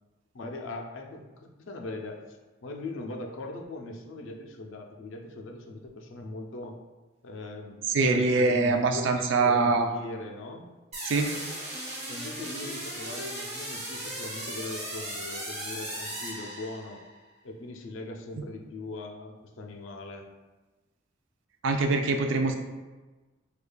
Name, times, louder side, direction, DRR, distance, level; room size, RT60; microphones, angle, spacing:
voice 1, 0.3-6.8 7.2-9.1 9.4-10.7 12.1-17.0 17.4-20.3, left 2 dB, 70° left, 3 dB, 0.4 m, -40 dB
voice 2, 7.9-9.9 11.0-11.3 21.6-22.6, right 3 dB, 65° right, 5 dB, 0.4 m, -24 dB
sound 1, 10.9-17.1, right 1 dB, 30° right, 0.9 m, -37 dB
4.9 x 2.3 x 2.2 m, 1.2 s
head